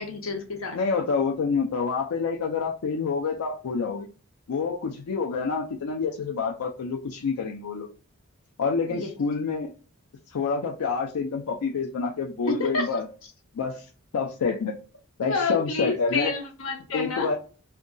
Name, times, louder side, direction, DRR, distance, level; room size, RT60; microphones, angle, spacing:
voice 1, 0.0-0.8 8.9-9.1 12.5-12.9 15.2-17.3, left 3 dB, 70° left, 0.8 m, -29 dB
voice 2, 0.7-4.1 4.5-7.9 8.6-9.7 10.3-13.1 13.5-13.9 14.1-14.7 15.2-16.3 16.9-17.4, left 5 dB, 90° left, 0.4 m, -27 dB
2.7 x 2.2 x 2.5 m
head